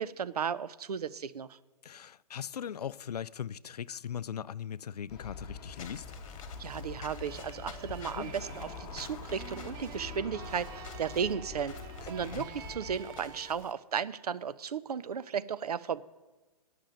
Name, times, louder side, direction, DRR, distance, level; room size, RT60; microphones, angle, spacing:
voice 1, 0.0-1.5 6.6-11.8 12.1-16.0, right 7 dB, 75° right, 0.6 m, -35 dB
voice 2, 1.8-6.1 8.1-8.3 12.0-12.5, left 8 dB, 80° left, 0.4 m, -39 dB
Aircraft, 5.1-13.0, left 5 dB, 25° left, 1.8 m, -45 dB
Walk footsteps / Squeak, 5.7-13.7, left 6 dB, 55° left, 1.5 m, -51 dB
sound 1, 7.2-13.5, right 9 dB, 15° right, 0.5 m, -48 dB
9.2 x 6.6 x 8.7 m
hypercardioid pair, 130°, 20 cm